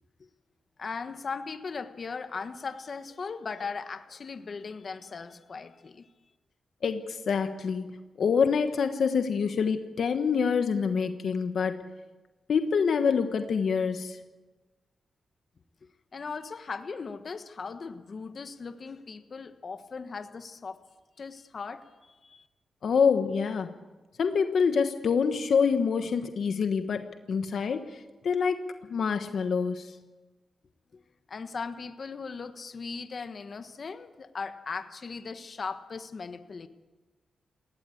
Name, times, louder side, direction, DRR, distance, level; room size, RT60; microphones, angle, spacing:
voice 1, 0.8-6.1 15.8-20.8 21.2-22.4 30.9-31.0 31.3-36.7, left 5 dB, 55° left, 9 dB, 1.4 m, -38 dB
voice 2, 6.8-7.9 8.2-11.8 12.5-14.2 22.8-23.7 24.2-29.9, left 6 dB, 70° left, 8 dB, 1.3 m, -26 dB
20.0 x 17.0 x 8.6 m, 1.2 s
cardioid pair, 65°, 0 cm